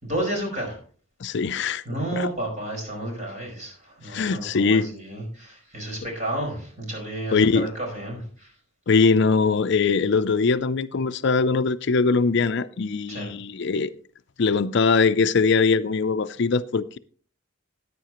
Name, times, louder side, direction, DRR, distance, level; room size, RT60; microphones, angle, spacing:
voice 1, 0.0-0.8 1.8-8.5 13.1-13.3, right 1 dB, 35° right, 5.1 m, -31 dB
voice 2, 1.2-1.8 2.1-2.3 4.1-4.9 7.3-7.7 8.9-13.9 14.4-17.0, left 4 dB, 55° left, 0.5 m, -21 dB
14.0 x 9.6 x 3.0 m
head